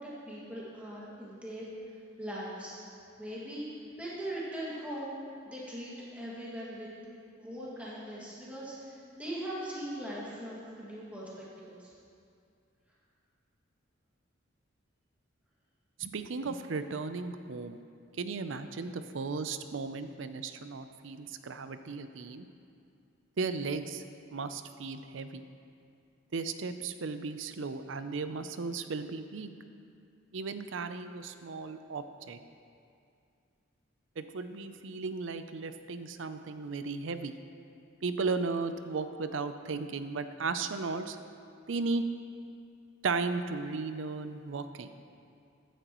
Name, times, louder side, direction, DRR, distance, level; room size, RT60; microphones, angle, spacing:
voice 1, 0.0-2.8 3.2-5.2 5.5-6.9 7.4-11.9, right 1 dB, 5° right, -8 dB, 2.1 m, -40 dB
voice 2, 16.0-17.8 18.2-22.5 23.4-24.0 24.3-25.4 26.3-29.5 30.3-32.4 34.2-37.3 38.0-41.2 41.7-42.0 43.0-44.9, right 4 dB, 70° right, 10 dB, 0.5 m, -35 dB
14.5 x 10.0 x 3.1 m, 2.4 s
head